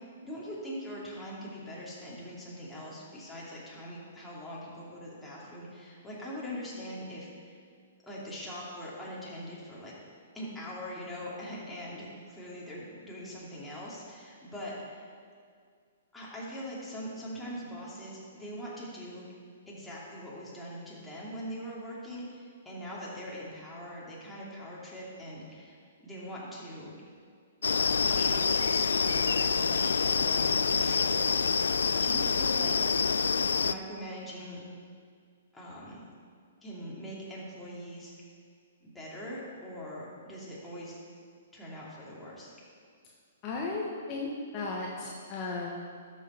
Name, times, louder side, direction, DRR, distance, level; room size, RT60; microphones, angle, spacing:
voice 1, 0.2-7.6 8.0-9.9 10.3-15.1 16.1-19.2 19.7-25.8 26.0-26.9 28.0-32.9 33.6-34.6 35.5-36.0 36.6-38.1 38.8-41.0 41.5-42.5, equal, 5° left, -7 dB, 2.7 m, -42 dB
sound 1, 27.6-33.7, left 5 dB, 75° left, 0.3 m, -26 dB
voice 2, 43.4-44.3 44.5-45.9, left 3 dB, 35° left, -3 dB, 1.3 m, -35 dB
12.5 x 6.4 x 4.4 m, 2.1 s
figure-of-eight pair, 120°, 0 cm